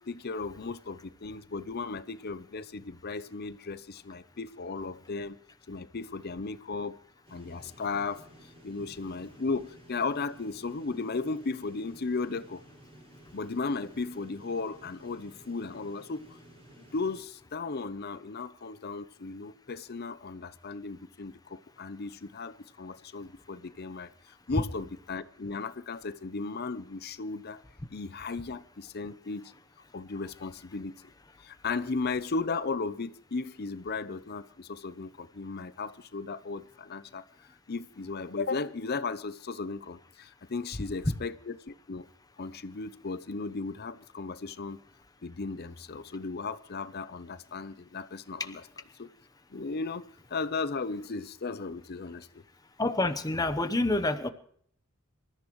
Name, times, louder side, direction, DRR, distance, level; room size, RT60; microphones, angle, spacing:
voice 1, 0.0-5.4 5.7-7.0 7.3-8.2 8.6-12.6 13.3-16.4 16.8-27.6 27.9-29.5 29.9-30.9 31.4-37.2 37.7-42.1 42.4-44.8 45.2-48.6 49.0-49.1 49.5-50.0 50.3-52.4, left 4 dB, 45° left, 0.7 m, -35 dB
sound 1, 7.2-17.2, right 1 dB, 30° right, 5.9 m, -54 dB
voice 2, 52.8-54.3, left 2 dB, 15° left, 0.9 m, -27 dB
26.5 x 14.0 x 3.1 m
head